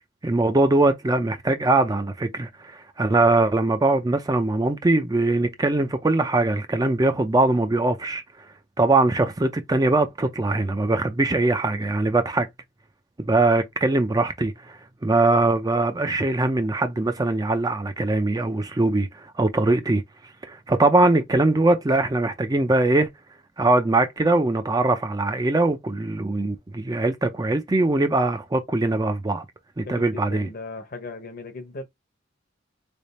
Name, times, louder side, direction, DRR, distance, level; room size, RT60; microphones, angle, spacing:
voice 1, 0.2-8.2 8.8-12.5 13.3-20.0 20.4-23.1 23.6-29.5 29.8-30.5, right 2 dB, 20° right, 0.4 m, -21 dB
voice 2, 29.9-31.8, left 3 dB, 50° left, 0.9 m, -37 dB
3.4 x 2.3 x 4.1 m
head